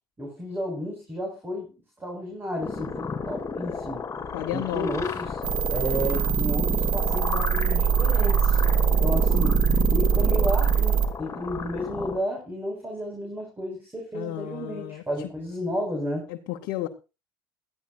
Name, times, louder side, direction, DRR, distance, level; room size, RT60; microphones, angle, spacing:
voice 1, 0.2-1.7 2.0-4.0 4.5-5.4 5.7-8.6 8.9-9.6 9.9-16.3, equal, 20° right, 5.7 m, -32 dB
sound 1, 2.6-12.2, left 5 dB, 30° left, 3.4 m, -33 dB
voice 2, 4.3-5.0 14.1-15.3 16.3-16.9, left 14 dB, 65° left, 1.2 m, -33 dB
sound 2, 5.4-11.1, right 7 dB, 55° right, 2.5 m, -22 dB
21.0 x 14.0 x 2.6 m
hypercardioid pair, 70°, 10 cm